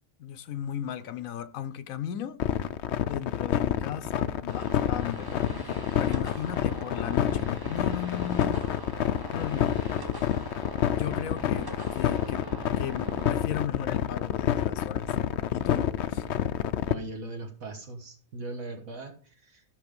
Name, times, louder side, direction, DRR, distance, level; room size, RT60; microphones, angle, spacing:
voice 1, 0.2-2.4 3.1-8.7 9.3-9.8 10.9-12.5 12.8-15.1 15.5-16.3, left 9 dB, 80° left, 1.1 m, -36 dB
sound 1, 2.4-16.9, left 10 dB, 65° left, 0.8 m, -28 dB
sound 2, 4.5-13.3, right 1 dB, 20° right, 1.0 m, -42 dB
voice 2, 16.9-19.6, right 2 dB, 80° right, 1.8 m, -39 dB
12.5 x 5.5 x 5.2 m
omnidirectional pair, 1.4 m